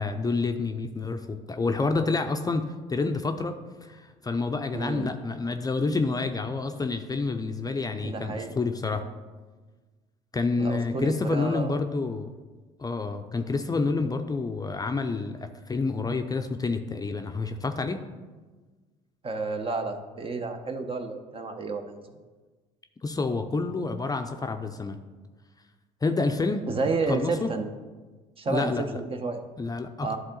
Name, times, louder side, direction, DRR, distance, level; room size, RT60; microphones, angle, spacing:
voice 1, 0.0-3.5 3.8-9.0 10.3-12.3 12.8-18.0 23.0-25.0 26.0-26.6 27.1-27.5 28.5-28.8 29.6-30.2, left 3 dB, 20° left, 6 dB, 0.6 m, -28 dB
voice 2, 4.7-5.1 8.0-8.5 10.6-11.8 19.2-22.0 26.7-27.7 28.4-29.4 30.0-30.2, right 3 dB, 35° right, 6 dB, 0.9 m, -30 dB
11.0 x 3.7 x 3.9 m, 1.3 s
hypercardioid pair, 65°, 17 cm